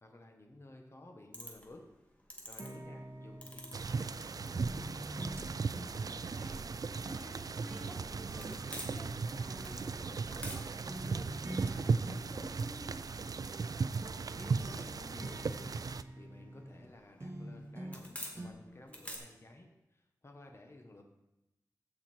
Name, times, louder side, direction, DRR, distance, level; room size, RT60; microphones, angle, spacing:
voice 1, 0.0-1.8 2.5-4.8 14.3-15.8 16.1-21.0, left 1 dB, 40° left, 3 dB, 1.5 m, -54 dB
sound 1, 1.3-19.2, equal, 20° left, 2.1 m, -53 dB
sound 2, 2.6-4.2 4.5-7.4 7.7-10.6 10.9-11.7 12.0-13.7 14.0-16.9 17.2-18.1 18.4-18.5, right 1 dB, 40° right, 1.6 m, -47 dB
sound 3, 3.7-16.0, right 4 dB, 60° right, 0.4 m, -37 dB
voice 2, 5.3-6.7 6.9-13.3, equal, 5° right, -5 dB, 3.9 m, -52 dB
15.0 x 5.7 x 4.5 m, 0.92 s
wide cardioid pair, 65°, 7 cm